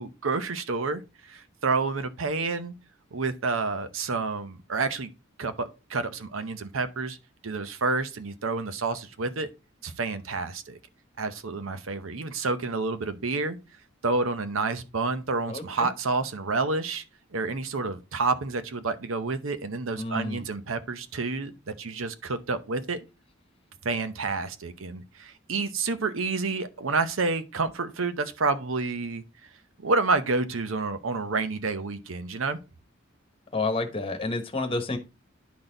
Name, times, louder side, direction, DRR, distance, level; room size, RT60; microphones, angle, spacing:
voice 1, 0.0-2.7 3.1-5.1 5.4-7.2 7.4-9.5 9.8-10.8 11.2-13.6 14.0-17.0 17.3-23.0 23.8-29.2 29.8-32.6, right 3 dB, 90° right, 0.8 m, -29 dB
voice 2, 15.5-15.9 20.0-20.4 33.5-35.0, left 3 dB, 30° left, 1.2 m, -30 dB
10.5 x 4.1 x 3.9 m
head